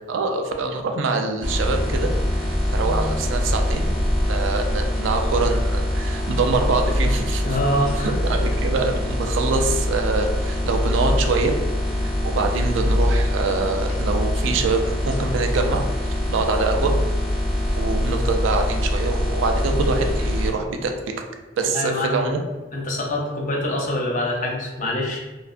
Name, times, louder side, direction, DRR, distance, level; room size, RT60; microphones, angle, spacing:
voice 1, 0.1-2.1 2.4-3.8 4.2-7.6 8.0-11.6 12.2-15.8 16.3-16.9 17.7-20.9 21.6-22.4, right 4 dB, 80° right, 4 dB, 0.3 m, -24 dB
sound 1, 1.4-20.5, left 1 dB, 5° right, 0.8 m, -23 dB
voice 2, 7.3-8.1 21.7-22.3 22.7-25.2, left 1 dB, 40° left, -1 dB, 0.5 m, -25 dB
2.5 x 2.2 x 2.4 m, 1.2 s
head